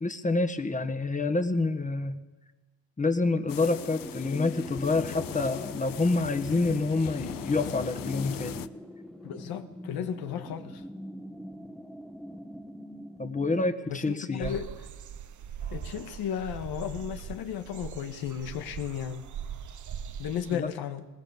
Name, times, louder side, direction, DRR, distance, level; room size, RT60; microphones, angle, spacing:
voice 1, 0.0-2.2 3.0-8.6 13.2-14.6 20.5-20.7, left 3 dB, 20° left, 1.6 m, -27 dB
sound 1, 3.5-8.7, left 12 dB, 70° left, 0.8 m, -40 dB
sound 2, 3.6-13.7, equal, ahead, 1.1 m, -42 dB
voice 2, 9.2-10.8 13.9-14.7 15.7-19.2 20.2-21.1, left 9 dB, 90° left, 1.7 m, -34 dB
sound 3, 14.4-20.6, right 8 dB, 55° right, 0.9 m, -41 dB
20.0 x 19.5 x 7.3 m
cardioid pair, 100°, 36 cm